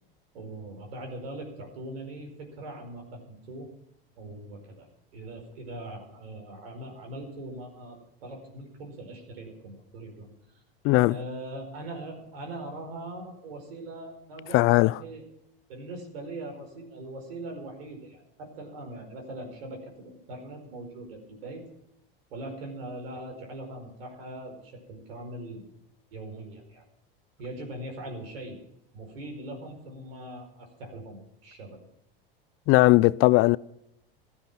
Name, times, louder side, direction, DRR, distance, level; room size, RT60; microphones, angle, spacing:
voice 1, 0.3-3.7 4.2-4.9 5.1-10.6 11.1-15.2 15.7-21.7 22.3-25.6 26.1-26.8 27.4-28.6 28.9-31.8, right 1 dB, 80° right, 5.1 m, -41 dB
voice 2, 10.8-11.2 14.5-14.9 32.7-33.6, left 20 dB, 50° left, 0.5 m, -19 dB
15.5 x 13.0 x 6.0 m
hypercardioid pair, 90°, 29 cm